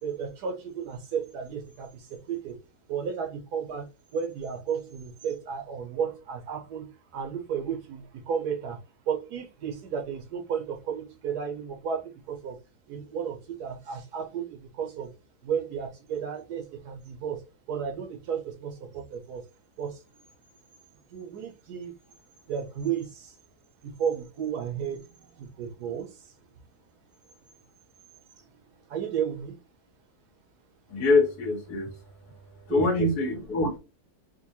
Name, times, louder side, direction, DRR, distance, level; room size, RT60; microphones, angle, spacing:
voice 1, 0.0-2.6 2.9-8.8 9.1-12.6 12.9-15.1 15.4-19.4 19.8-20.0 21.1-21.9 22.5-23.3 23.8-26.1 28.9-29.5 32.7-33.1, right 7 dB, 85° right, 1.5 m, -33 dB
voice 2, 30.9-31.9 32.7-33.8, left 2 dB, 80° left, 1.4 m, -24 dB
4.5 x 2.2 x 2.8 m
omnidirectional pair, 1.6 m